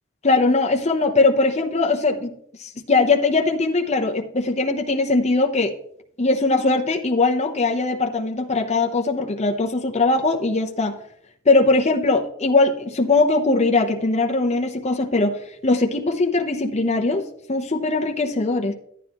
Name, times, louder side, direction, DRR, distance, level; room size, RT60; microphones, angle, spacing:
voice 1, 0.2-2.3 2.6-5.7 6.2-10.9 11.4-17.2 17.5-18.7, left 3 dB, 30° left, 3 dB, 0.9 m, -20 dB
11.5 x 9.8 x 3.0 m, 0.66 s
head